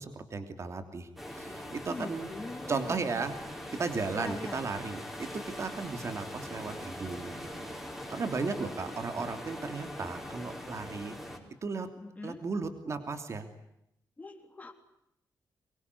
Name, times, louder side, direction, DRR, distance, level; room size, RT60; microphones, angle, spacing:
voice 1, 0.0-2.3 2.7-3.3 3.8-7.7 8.1-11.2 11.6-11.9 12.2-13.5, right 4 dB, 40° right, 8 dB, 3.0 m, -35 dB
sound 1, 1.2-11.4, left 1 dB, ahead, 5.0 m, -42 dB
voice 2, 1.7-3.0 4.2-4.6 12.0-12.4 14.2-14.7, left 3 dB, 20° left, 5 dB, 3.5 m, -42 dB
25.0 x 22.5 x 9.8 m, 0.79 s
wide cardioid pair, 155°, 7 cm